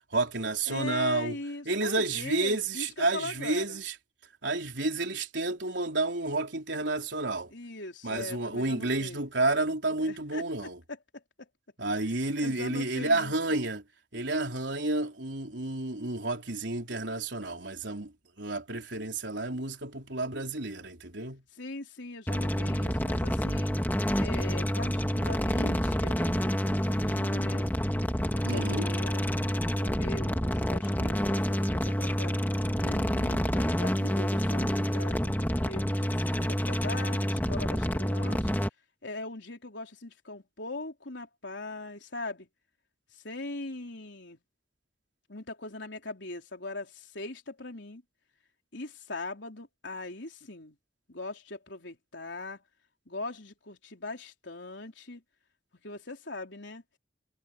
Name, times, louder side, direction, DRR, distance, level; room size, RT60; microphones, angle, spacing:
voice 1, 0.1-1.4 1.7-3.9 4.4-7.5 8.0-10.8 11.8-13.8 14.1-18.1 18.4-21.4 28.4-28.9, right 2 dB, 75° right, 3.8 m, -30 dB
voice 2, 0.7-3.8 7.5-9.3 10.0-10.4 11.1-11.5 12.1-13.6 21.5-23.7 24.2-27.7 28.3-29.3 29.8-38.5 39.0-42.5 43.1-44.4 45.3-48.0 48.7-50.8 51.1-52.6 53.1-55.2 55.8-56.8, left 2 dB, 75° left, 3.9 m, -41 dB
sound 1, 22.3-38.7, equal, 10° left, 1.8 m, -28 dB
head